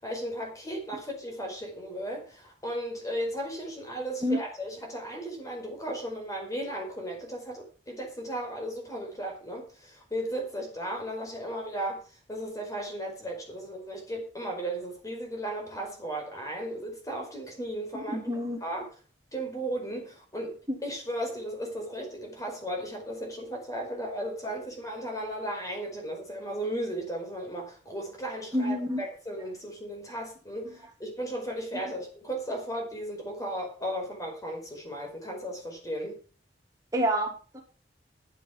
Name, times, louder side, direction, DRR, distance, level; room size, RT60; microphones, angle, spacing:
voice 1, 0.0-12.0 12.3-18.2 18.6-18.9 19.3-36.1, right 1 dB, 20° left, 2 dB, 5.0 m, -35 dB
voice 2, 17.9-18.6 20.7-20.8 28.5-29.0 30.6-30.7 36.9-37.6, equal, 20° right, 1 dB, 3.0 m, -28 dB
13.0 x 8.2 x 6.0 m, 0.38 s
head